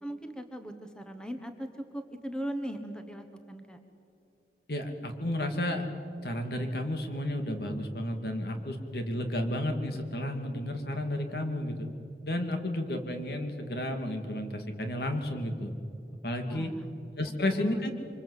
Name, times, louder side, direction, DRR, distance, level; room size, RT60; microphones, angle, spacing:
voice 1, 0.0-3.8 16.5-16.8 17.4-17.8, right 1 dB, 5° left, 6 dB, 1.3 m, -39 dB
voice 2, 4.7-5.9 6.2-11.9 12.2-15.7 16.2-16.7 17.2-17.9, left 1 dB, 60° left, 5 dB, 2.5 m, -32 dB
26.5 x 25.0 x 8.3 m, 2.6 s
head